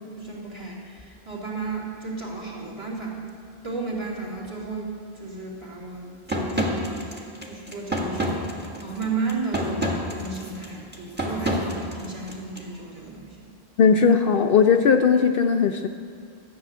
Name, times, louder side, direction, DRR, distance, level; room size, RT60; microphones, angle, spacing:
voice 1, 0.2-3.2 3.6-4.9 5.2-8.5 8.8-13.4, right 4 dB, 25° right, -3 dB, 2.9 m, -33 dB
sound 1, 6.3-12.6, equal, 10° right, 1.5 m, -29 dB
voice 2, 13.8-15.9, left 6 dB, 65° left, 6 dB, 0.7 m, -18 dB
13.5 x 6.9 x 9.3 m, 2.4 s
omnidirectional pair, 1.1 m